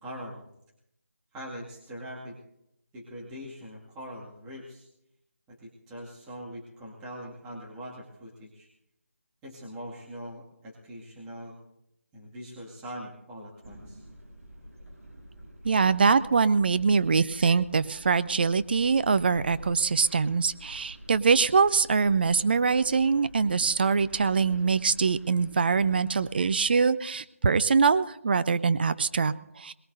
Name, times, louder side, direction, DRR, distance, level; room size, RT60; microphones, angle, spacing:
voice 1, 0.0-0.4 1.3-2.4 2.9-4.9 5.5-8.7 9.4-11.6 12.1-14.0, equal, 10° right, -5 dB, 2.1 m, -42 dB
sound 1, 13.6-26.7, equal, 65° right, 7.9 m, -48 dB
voice 2, 15.6-29.7, right 5 dB, 40° right, 14 dB, 0.6 m, -23 dB
22.5 x 20.0 x 2.7 m, 0.80 s
figure-of-eight pair, 160°, 8 cm